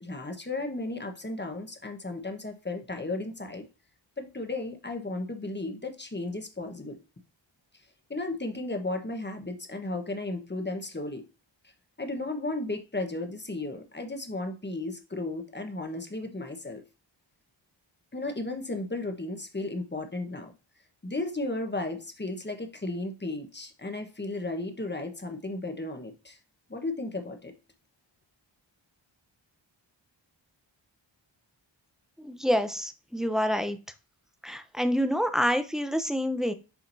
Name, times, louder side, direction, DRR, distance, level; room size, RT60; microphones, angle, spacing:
voice 1, 0.0-3.7 4.2-7.0 8.1-11.2 12.0-16.8 18.1-20.5 21.0-26.4 26.7-27.5, left 2 dB, 20° left, 5 dB, 1.2 m, -34 dB
voice 2, 32.2-33.8 34.4-36.5, equal, ahead, 8 dB, 0.7 m, -27 dB
7.2 x 5.0 x 2.7 m, 0.31 s
wide cardioid pair, 75°, 47 cm